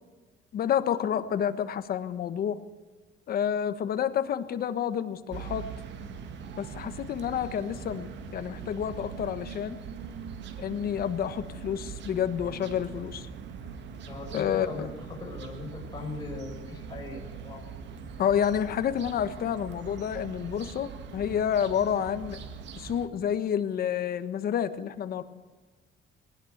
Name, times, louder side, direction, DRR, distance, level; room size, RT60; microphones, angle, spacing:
voice 1, 0.5-2.6 3.3-5.6 6.5-9.8 10.6-13.3 14.3-14.9 18.2-22.4 22.8-25.2, left 9 dB, 45° left, 11 dB, 1.3 m, -29 dB
sound 1, 5.3-23.1, right 6 dB, 60° right, 1.9 m, -42 dB
voice 2, 14.0-17.6, left 3 dB, 20° left, -1 dB, 6.5 m, -40 dB
20.0 x 19.0 x 8.0 m, 1.3 s
cardioid pair, 180°, 21 cm